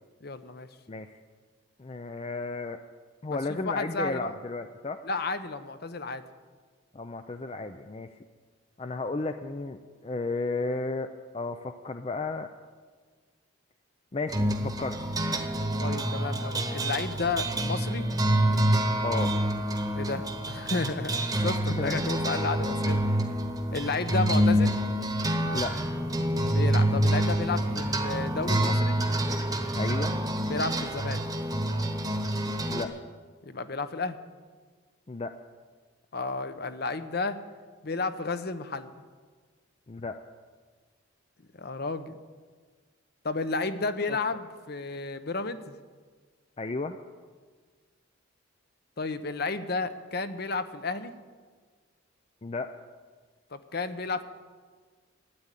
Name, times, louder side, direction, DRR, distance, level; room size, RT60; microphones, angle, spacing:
voice 1, 0.2-0.7 3.3-3.4 3.7-4.3 5.0-6.2 15.8-18.1 20.0-23.3 23.7-24.8 26.4-29.0 30.5-31.2 33.4-34.2 36.1-37.4 37.8-38.9 41.6-42.1 43.2-45.7 49.0-51.1 53.5-54.2, left 3 dB, 50° left, 11 dB, 0.8 m, -32 dB
voice 2, 1.8-2.8 3.2-5.0 6.9-8.1 8.8-11.1 11.3-12.5 14.1-15.0 19.0-19.3 21.8-22.0 25.5-25.8 29.7-30.1 32.7-32.9 35.1-35.4 39.9-40.2 44.1-44.2 46.6-47.0 52.4-52.7, left 3 dB, 30° left, 8 dB, 0.5 m, -33 dB
sound 1, 14.3-32.8, right 1 dB, 20° right, 1.1 m, -27 dB
13.0 x 8.8 x 9.8 m, 1.5 s
head